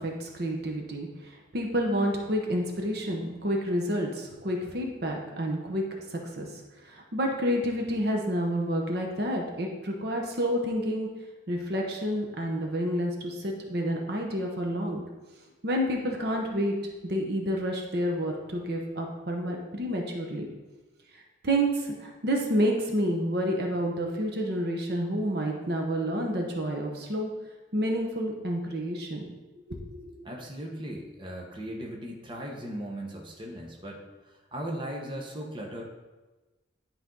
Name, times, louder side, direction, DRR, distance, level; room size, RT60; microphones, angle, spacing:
voice 1, 0.0-5.8 6.1-6.5 6.9-11.1 11.5-15.0 15.6-16.7 17.0-20.5 21.4-27.3 27.7-29.2 29.7-30.3, equal, 55° right, 1 dB, 1.0 m, -29 dB
voice 2, 30.2-35.8, right 1 dB, 25° right, -1 dB, 1.0 m, -38 dB
10.5 x 4.4 x 3.9 m, 1.2 s
head